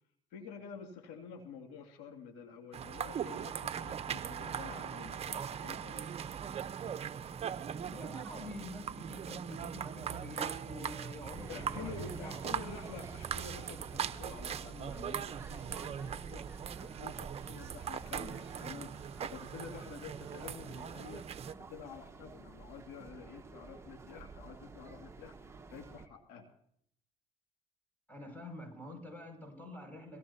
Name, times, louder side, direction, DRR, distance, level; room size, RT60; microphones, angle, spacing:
voice 1, 0.3-6.2 11.5-16.4 16.8-21.3 21.7-25.4 25.7-26.5, left 6 dB, 85° left, 1 dB, 2.5 m, -49 dB
sound 1, 2.7-21.5, right 8 dB, 45° right, 0.9 m, -40 dB
voice 2, 7.9-12.0 12.2-12.4 28.1-30.2, left 1 dB, 10° left, 4 dB, 6.3 m, -47 dB
sound 2, 11.3-26.1, right 4 dB, 20° right, 1.4 m, -50 dB
22.5 x 17.0 x 2.8 m, 0.67 s
supercardioid pair, 80°, 14 cm